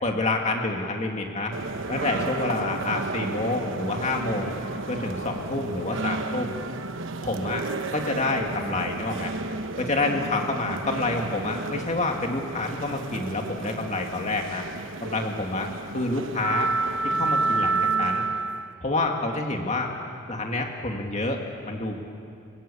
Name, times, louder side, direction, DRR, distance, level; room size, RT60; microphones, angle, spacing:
voice 1, 0.0-1.5 1.9-4.5 4.9-6.5 7.2-7.6 7.9-9.3 9.8-14.6 15.0-16.7 17.0-18.3 18.8-19.9 20.3-21.4 21.6-22.0, left 2 dB, 35° left, 2 dB, 2.1 m, -28 dB
sound 1, 1.5-18.7, right 3 dB, 65° right, 1.0 m, -31 dB
29.5 x 21.0 x 8.5 m, 2.5 s
head